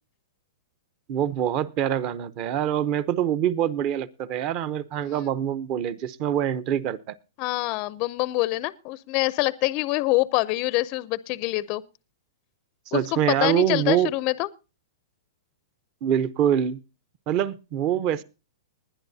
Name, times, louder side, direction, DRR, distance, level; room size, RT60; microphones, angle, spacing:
voice 1, 1.1-7.2 12.9-14.1 16.0-16.8 17.3-18.2, right 10 dB, 30° right, 0.8 m, -25 dB
voice 2, 7.4-11.8 12.9-14.5, left 20 dB, 35° left, 0.5 m, -25 dB
20.0 x 11.0 x 2.7 m
hypercardioid pair, 155°, 2 cm